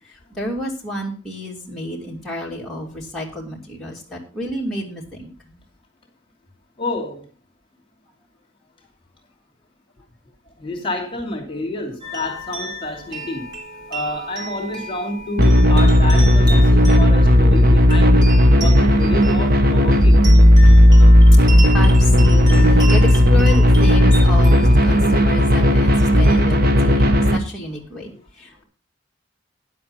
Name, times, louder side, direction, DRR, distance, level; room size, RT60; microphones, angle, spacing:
voice 1, 0.1-5.6 12.9-13.0 20.6-20.7 21.4-28.6, equal, ahead, -5 dB, 2.8 m, -30 dB
voice 2, 6.8-7.2 10.6-13.6 13.9-18.3 18.6-20.2, left 2 dB, 30° left, 1 dB, 2.8 m, -29 dB
sound 1, 12.0-26.4, right 1 dB, 20° right, 3.1 m, -33 dB
sound 2, 15.4-27.4, equal, 50° right, 1.3 m, -13 dB
10.5 x 7.7 x 5.7 m, 0.35 s
head